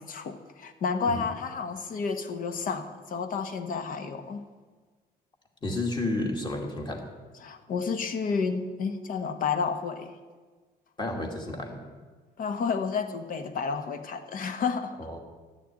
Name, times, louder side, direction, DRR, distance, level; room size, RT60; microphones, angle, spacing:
voice 1, 0.0-4.4 7.4-10.1 12.4-15.0, left 5 dB, 55° left, 8 dB, 1.3 m, -31 dB
voice 2, 5.6-7.0 11.0-11.8 15.0-15.2, left 2 dB, 25° left, 2 dB, 2.3 m, -31 dB
12.0 x 6.7 x 9.0 m, 1.4 s
cardioid pair, 110°, 17 cm